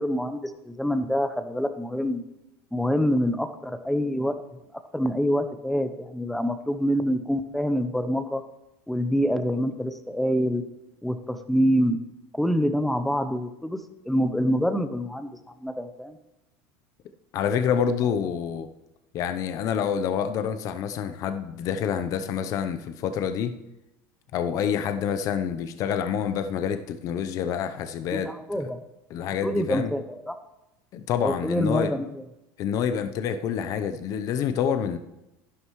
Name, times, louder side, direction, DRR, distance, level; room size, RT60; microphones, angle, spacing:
voice 1, 0.0-2.2 2.7-4.6 4.9-8.4 8.9-10.6 11.0-12.0 12.3-13.8 14.1-15.3 15.6-16.2 28.1-28.8 29.4-30.4 31.2-32.2, equal, ahead, 9 dB, 0.8 m, -26 dB
voice 2, 17.3-18.7 19.1-23.6 24.3-28.3 28.6-28.7 29.1-29.9 30.9-31.9 32.6-35.0, left 8 dB, 45° left, 9 dB, 0.7 m, -27 dB
11.5 x 11.0 x 3.1 m, 0.93 s
supercardioid pair, 130°, 8 cm